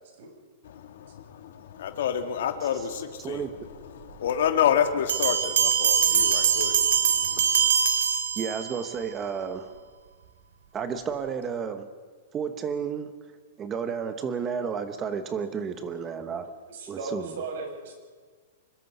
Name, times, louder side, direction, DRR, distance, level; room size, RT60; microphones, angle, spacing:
voice 1, 0.6-3.5 3.9-7.7, left 8 dB, 60° left, 6 dB, 2.2 m, -29 dB
voice 2, 3.2-3.5 8.4-9.7 10.7-11.9 12.3-13.1 13.6-16.5 16.9-17.3, right 6 dB, 15° right, 9 dB, 1.0 m, -31 dB
Bell, 5.1-8.9, right 7 dB, 85° right, 3.4 m, -23 dB
voice 3, 16.7-18.0, right 3 dB, 60° right, 3 dB, 6.7 m, -36 dB
25.0 x 22.0 x 5.5 m, 1.5 s
supercardioid pair, 175°, 0 cm